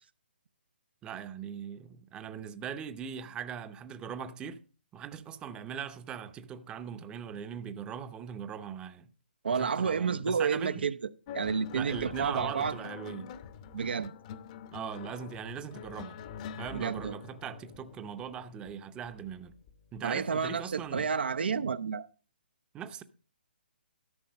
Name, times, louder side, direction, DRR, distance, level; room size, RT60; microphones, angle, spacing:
voice 1, 1.0-4.6 4.9-9.1 9.5-10.9 11.7-13.3 14.7-16.2 16.6-19.6 19.9-21.1 22.7-23.0, right 8 dB, 15° right, 0.7 m, -40 dB
voice 2, 9.4-11.0 11.3-12.8 13.7-14.1 16.7-17.2 20.0-22.1, right 6 dB, 70° right, 0.6 m, -30 dB
sound 1, 11.3-20.0 21.0-21.2, left 7 dB, 35° left, 0.8 m, -45 dB
13.0 x 5.9 x 5.2 m
hypercardioid pair, 140°, 6 cm